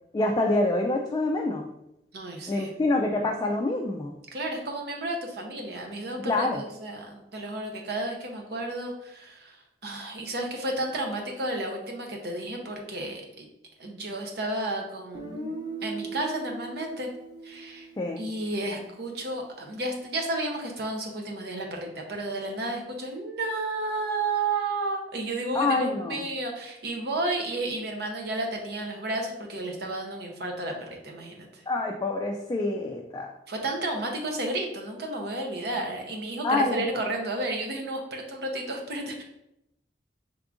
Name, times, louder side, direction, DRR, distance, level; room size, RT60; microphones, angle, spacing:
voice 1, 0.1-1.7 2.5-4.1 6.2-6.6 18.0-18.2 25.5-26.3 31.7-33.3 36.4-36.8, left 2 dB, 25° left, 1 dB, 0.3 m, -26 dB
voice 2, 2.1-2.7 4.3-9.6 9.8-13.5 13.8-15.5 15.8-17.1 17.4-17.9 18.2-31.6 33.5-39.2, right 2 dB, 65° right, 1 dB, 0.8 m, -32 dB
Guitar, 15.1-19.1, right 3 dB, 25° right, 1.0 m, -39 dB
4.7 x 3.5 x 2.5 m, 0.84 s
head